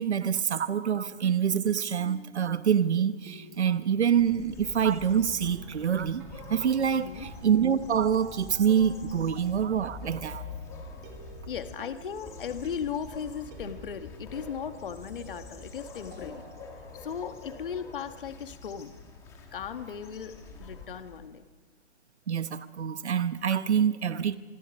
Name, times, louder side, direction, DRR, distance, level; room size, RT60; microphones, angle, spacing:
voice 1, 0.0-6.2 6.5-10.4 22.3-24.4, right 8 dB, 75° right, 1.1 m, -26 dB
sound 1, 1.0-16.8, right 5 dB, 10° right, 1.6 m, -53 dB
sound 2, 4.0-21.3, left 3 dB, 10° left, 1.7 m, -45 dB
voice 2, 6.9-7.3 11.5-16.4 16.9-18.9 19.5-21.5, left 7 dB, 50° left, 1.5 m, -37 dB
25.5 x 23.5 x 5.4 m
hypercardioid pair, 165°, 34 cm